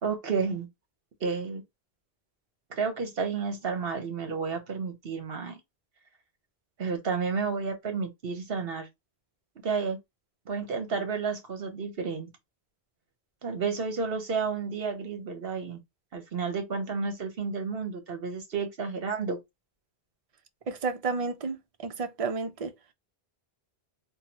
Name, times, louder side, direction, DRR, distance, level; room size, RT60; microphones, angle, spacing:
voice 1, 0.0-0.7 1.2-1.6 2.7-5.6 6.8-8.9 9.6-10.0 10.5-12.3 13.4-15.8 16.1-19.4, right 5 dB, 65° right, 1.1 m, -31 dB
voice 2, 20.7-21.6 21.8-22.7, right 4 dB, 45° right, 0.5 m, -31 dB
3.7 x 2.1 x 2.8 m
omnidirectional pair, 1.1 m